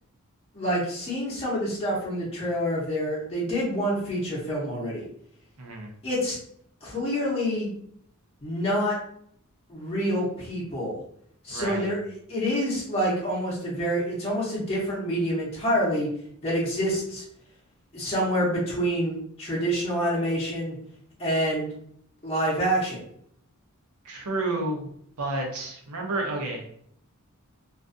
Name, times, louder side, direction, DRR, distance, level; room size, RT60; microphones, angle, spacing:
voice 1, 0.5-5.0 6.0-6.4 6.8-7.7 8.4-9.0 9.7-11.0 11.4-12.0 12.3-16.1 16.4-17.2 17.9-20.8 21.2-21.7 22.2-23.0, equal, 30° left, -7 dB, 0.8 m, -27 dB
voice 2, 5.6-5.9 11.5-11.9 24.0-24.9 25.2-26.7, right 2 dB, 80° right, 1 dB, 0.7 m, -30 dB
2.5 x 2.2 x 2.5 m, 0.65 s
head